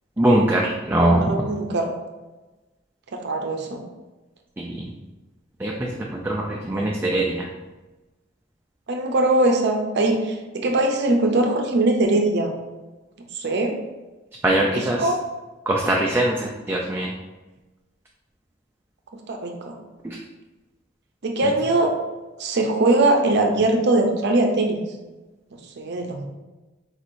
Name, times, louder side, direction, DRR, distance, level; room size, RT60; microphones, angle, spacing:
voice 1, 0.2-1.2 4.6-4.9 5.6-7.5 14.4-15.0 15.7-17.1, right 1 dB, 10° right, -1 dB, 0.4 m, -22 dB
voice 2, 1.2-1.9 3.1-3.8 6.7-7.0 8.9-12.5 13.3-13.8 14.6-15.2 19.3-19.8 21.2-21.9 22.4-24.8 25.8-26.3, right 2 dB, 60° right, 2 dB, 0.6 m, -21 dB
4.5 x 4.0 x 2.6 m, 1.1 s
head